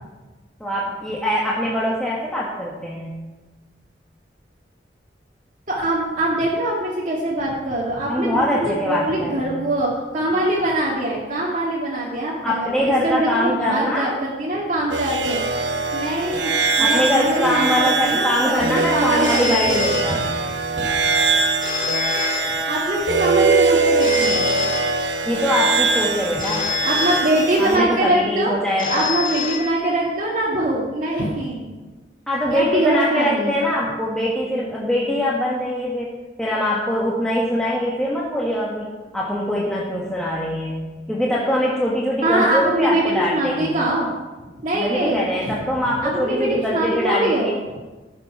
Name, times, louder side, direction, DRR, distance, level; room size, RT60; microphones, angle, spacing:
voice 1, 0.6-3.1 8.1-9.6 10.3-10.4 12.4-14.2 16.8-20.3 20.8-20.9 25.2-26.7 27.6-29.1 32.3-36.1 36.4-40.8 41.1-43.7 44.7-47.8, equal, 5° left, -6 dB, 1.4 m, -23 dB
voice 2, 5.7-15.4 15.9-16.5 16.8-19.8 22.7-24.5 26.8-28.5 28.9-31.8 32.5-33.7 42.2-44.1 44.6-45.6 46.0-47.5, right 1 dB, 45° right, -5 dB, 1.9 m, -23 dB
sound 1, 14.9-27.8, right 4 dB, 80° right, 1.1 m, -22 dB
Telephone, 19.2-20.7 21.6-23.1 24.0-25.5 26.4-27.9 28.8-30.3, left 7 dB, 50° left, 1.7 m, -28 dB
14.0 x 7.0 x 5.9 m, 1.2 s
head